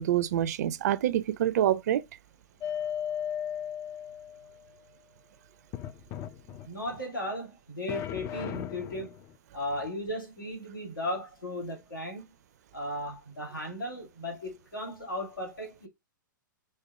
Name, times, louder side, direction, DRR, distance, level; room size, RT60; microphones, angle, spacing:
voice 1, 0.0-2.0, right 11 dB, 55° right, 0.4 m, -26 dB
sound 1, 2.6-4.6 5.7-7.0 7.9-9.3, left 9 dB, 25° left, 0.3 m, -36 dB
voice 2, 6.7-9.2 9.5-12.3 12.7-15.9, left 1 dB, 85° left, 2.0 m, -36 dB
4.4 x 3.3 x 3.4 m
figure-of-eight pair, 115°, 11 cm